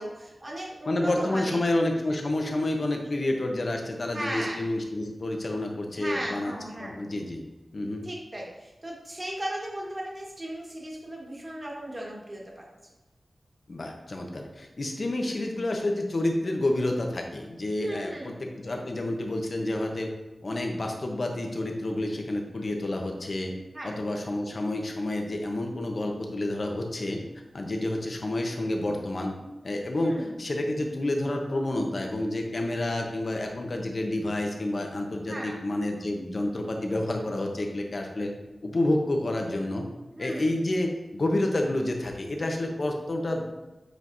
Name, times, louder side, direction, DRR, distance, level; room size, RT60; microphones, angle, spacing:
voice 1, 0.0-1.6 4.1-4.6 6.0-7.0 8.0-12.7 17.8-18.3 23.7-23.9 30.0-30.3 35.3-35.6 40.1-40.5, right 1 dB, 30° right, -2 dB, 1.5 m, -36 dB
voice 2, 0.9-6.5 6.8-7.4 7.7-8.1 13.7-20.1 20.4-23.6 23.8-27.2 27.5-29.3 29.6-38.3 38.6-39.8 40.2-43.4, left 1 dB, 55° left, 2 dB, 0.9 m, -29 dB
8.0 x 4.6 x 2.7 m, 1.1 s
wide cardioid pair, 95°, 0 cm